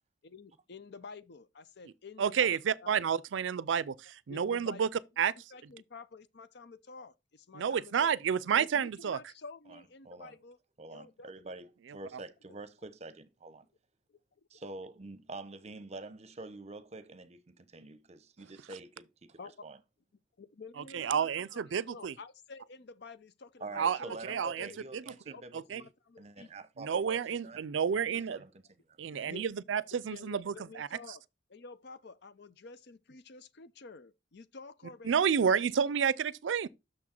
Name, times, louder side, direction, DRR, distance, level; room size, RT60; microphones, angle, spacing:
voice 1, 0.2-2.9 4.3-4.9 5.2-8.1 8.6-10.6 10.9-11.3 14.1-14.2 14.5-14.6 19.4-19.5 20.4-24.8 25.3-26.5 29.1-29.4 29.9-31.2 31.5-35.2 35.6-35.9, left 4 dB, 60° left, 0.6 m, -50 dB
voice 2, 2.2-4.9 5.2-5.3 7.5-9.2 20.9-22.1 23.8-24.0 24.3-24.7 24.9-25.0 25.5-25.8 26.8-28.4 29.0-30.9 35.0-36.7, right 7 dB, 80° right, 0.4 m, -30 dB
voice 3, 9.7-10.4 10.8-13.7 14.5-19.8 23.6-25.9 26.2-27.6 28.1-29.1, right 2 dB, 35° right, 0.8 m, -47 dB
6.4 x 6.1 x 4.3 m
head